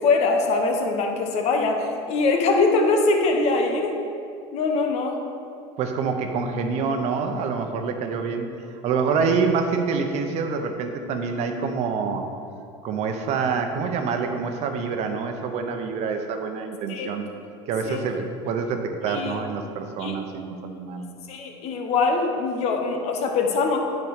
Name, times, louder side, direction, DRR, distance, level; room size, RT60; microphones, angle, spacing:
voice 1, 0.0-4.0 4.5-5.2 16.9-17.1 17.9-18.0 19.1-19.4 20.0-20.2 21.3-23.8, left 3 dB, 55° left, 3 dB, 1.0 m, -22 dB
voice 2, 5.8-12.2 12.8-17.3 17.7-21.1, right 5 dB, 55° right, 5 dB, 0.8 m, -26 dB
9.2 x 5.2 x 3.6 m, 2.5 s
supercardioid pair, 115°, 14 cm